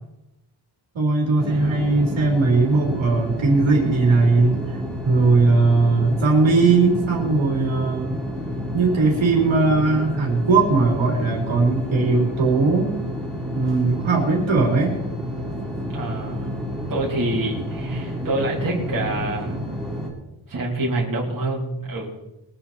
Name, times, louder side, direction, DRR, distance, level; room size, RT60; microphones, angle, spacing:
voice 1, 0.9-4.8 5.0-8.2 8.7-12.9 13.5-15.0, right 3 dB, 70° right, 0 dB, 3.6 m, -19 dB
sound 1, 1.4-20.1, equal, ahead, 3.2 m, -30 dB
voice 2, 15.9-16.5 16.9-19.6 20.5-22.2, right 2 dB, 40° right, -4 dB, 3.7 m, -26 dB
22.0 x 8.9 x 4.3 m, 0.92 s
wide cardioid pair, 170°, 48 cm